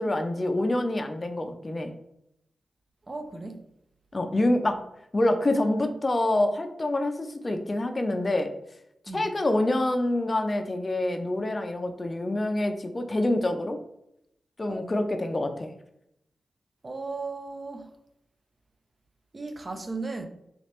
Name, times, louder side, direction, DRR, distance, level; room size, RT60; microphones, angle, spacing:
voice 1, 0.0-1.9 4.1-4.8 5.1-8.5 9.1-13.8 14.6-15.7, left 1 dB, 35° left, 5 dB, 0.4 m, -26 dB
voice 2, 3.1-3.6 9.1-9.3 14.7-15.1 16.8-17.9 19.3-20.3, right 3 dB, 35° right, 6 dB, 0.5 m, -36 dB
3.2 x 3.1 x 2.9 m, 0.79 s
cardioid pair, 70°, 0 cm